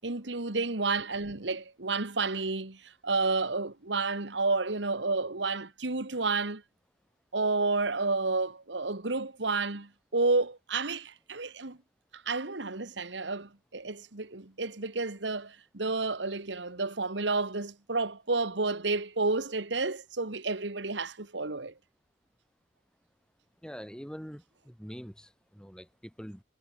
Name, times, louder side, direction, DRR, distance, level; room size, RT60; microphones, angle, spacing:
voice 1, 0.0-6.6 7.3-11.8 12.1-21.7, right 3 dB, 80° right, 1.8 m, -31 dB
voice 2, 23.6-26.4, equal, 5° left, 3.3 m, -44 dB
head